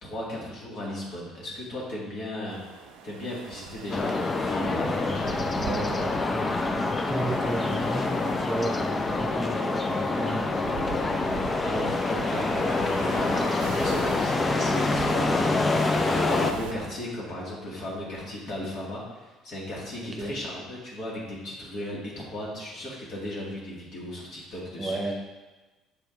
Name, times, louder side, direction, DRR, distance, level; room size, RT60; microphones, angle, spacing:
voice 1, 0.0-2.6 3.0-5.5 11.4-25.1, left 1 dB, 50° left, -5 dB, 2.1 m, -36 dB
sound 1, 2.5-16.9, right 7 dB, 65° right, 0.5 m, -41 dB
sound 2, 3.9-16.5, left 3 dB, 25° left, 0.6 m, -26 dB
voice 2, 5.6-10.5 20.0-20.4 24.8-25.1, right 1 dB, 25° right, 0 dB, 1.1 m, -33 dB
7.3 x 4.4 x 3.7 m, 1.2 s
figure-of-eight pair, 55°, 0 cm